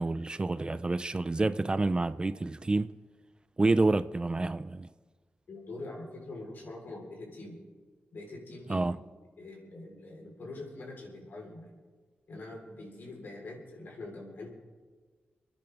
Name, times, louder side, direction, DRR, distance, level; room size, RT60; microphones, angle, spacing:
voice 1, 0.0-2.9 3.6-4.9 8.7-9.0, right 2 dB, 25° right, 0.4 m, -28 dB
voice 2, 5.5-7.6 8.1-9.0 9.4-11.7 12.3-14.5, left 2 dB, 75° left, 3.9 m, -44 dB
29.5 x 10.0 x 3.5 m
wide cardioid pair, 95°, 4 cm